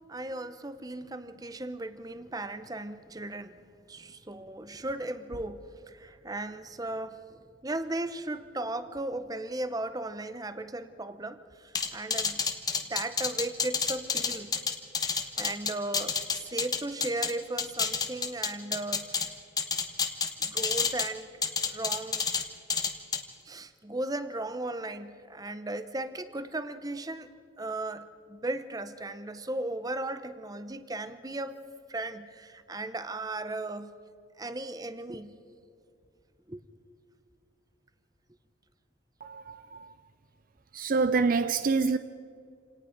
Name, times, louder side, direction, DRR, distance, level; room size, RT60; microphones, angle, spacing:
voice 1, 0.1-3.6 3.9-12.5 12.8-14.5 15.4-19.1 20.4-21.3 21.6-22.3 23.5-27.3 27.6-31.6 31.9-34.0 34.4-35.4 36.5-36.6, right 2 dB, 20° right, 0.8 m, -36 dB
sound 1, 11.8-17.3 17.6-19.3 19.6-21.1 21.4-22.4 22.7-23.2, left 5 dB, 20° left, 1.1 m, -29 dB
voice 2, 39.2-39.9 40.7-42.0, right 4 dB, 45° right, 0.5 m, -26 dB
27.5 x 18.0 x 5.2 m
head